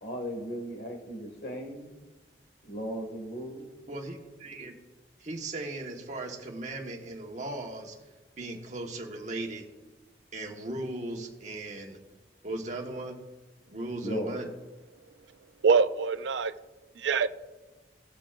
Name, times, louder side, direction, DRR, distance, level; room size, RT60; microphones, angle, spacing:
voice 1, 0.0-1.9 2.7-3.7 14.0-14.4, equal, 60° left, 2.0 m, -36 dB
voice 2, 3.9-4.8 5.2-7.9 8.4-9.7 10.3-12.0 12.4-13.2 13.7-14.5, right 2 dB, 40° right, 1.4 m, -37 dB
voice 3, 15.6-16.5 17.0-17.3, right 5 dB, 85° right, 0.4 m, -24 dB
18.0 x 6.7 x 2.5 m
head